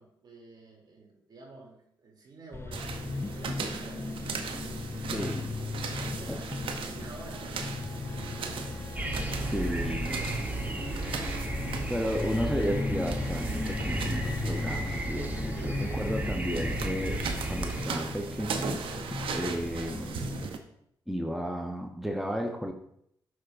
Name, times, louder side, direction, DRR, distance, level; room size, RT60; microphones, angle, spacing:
voice 1, 0.0-6.4 6.7-8.8 10.1-10.8 15.5-16.4, right 3 dB, 55° right, -1 dB, 2.9 m, -49 dB
sound 1, 2.5-20.5, left 4 dB, 25° left, 0.4 m, -37 dB
sound 2, 2.7-20.6, right 5 dB, 75° right, 0.8 m, -39 dB
voice 2, 5.1-5.5 6.3-6.4 9.5-10.2 11.9-18.5 19.3-20.3 21.1-22.7, equal, ahead, 3 dB, 0.8 m, -33 dB
sound 3, 9.0-17.9, right 2 dB, 20° right, 1.1 m, -34 dB
12.0 x 4.8 x 2.6 m, 0.72 s
supercardioid pair, 50°, 9 cm